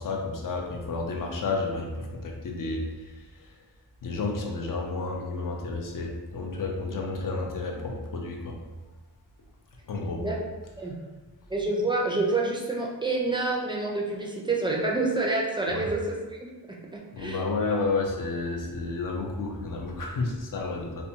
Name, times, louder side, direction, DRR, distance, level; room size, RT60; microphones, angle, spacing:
voice 1, 0.0-3.6 4.0-8.6 9.8-10.2 15.7-15.8 17.1-21.0, left 3 dB, 50° left, 1 dB, 0.5 m, -31 dB
voice 2, 11.5-17.4, right 2 dB, 10° right, -2 dB, 0.4 m, -28 dB
2.5 x 2.2 x 2.7 m, 1.3 s
wide cardioid pair, 85°, 43 cm